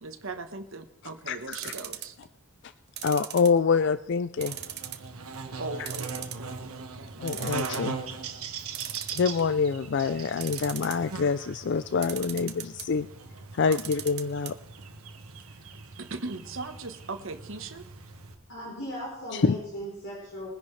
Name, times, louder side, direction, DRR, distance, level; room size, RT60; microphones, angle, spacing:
voice 1, 0.0-2.1 5.6-7.3 13.7-13.8 15.4-15.5 16.0-17.8, right 3 dB, 65° right, 7 dB, 1.2 m, -39 dB
voice 2, 1.3-1.7 3.0-4.6 5.8-5.9 7.2-7.9 9.1-13.1 13.5-14.5 19.3-19.6, left 5 dB, 55° left, 12 dB, 0.4 m, -26 dB
sound 1, 1.5-2.3 3.0-3.9 4.4-5.1 5.4-5.5 5.9-6.7 7.0-7.1 7.3-7.9 8.7-9.6 10.3-11.2 12.0-12.9 13.6-14.5 14.8-14.9 15.2-15.3, right 12 dB, 50° right, 1.0 m, -38 dB
Buzz, 4.4-18.3, right 4 dB, 90° right, 1.5 m, -40 dB
voice 3, 18.5-20.5, equal, 70° left, -4 dB, 4.0 m, -37 dB
22.0 x 10.5 x 3.3 m, 0.76 s
head